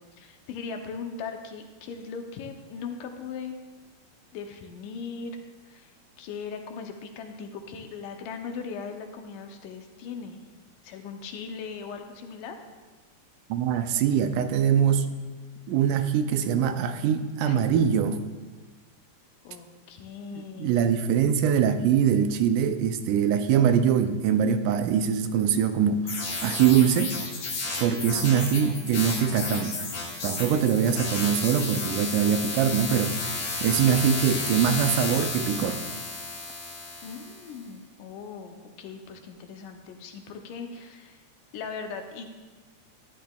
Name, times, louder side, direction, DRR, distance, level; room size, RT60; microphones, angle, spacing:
voice 1, 0.0-3.6 4.3-5.4 5.7-5.9 6.2-10.4 10.8-12.6 17.4-17.6 17.9-18.0 19.4-20.8 28.0-28.4 33.7-34.2 37.0-41.2 41.5-42.3, left 5 dB, 85° left, 5 dB, 2.4 m, -39 dB
voice 2, 13.5-15.1 15.7-18.2 20.3-27.2 27.8-29.8 30.2-33.3 33.6-35.8, right 8 dB, 85° right, 9 dB, 2.1 m, -23 dB
sound 1, 26.1-37.5, left 3 dB, 55° left, 2.4 m, -32 dB
12.5 x 10.0 x 2.3 m, 1.3 s
omnidirectional pair, 3.6 m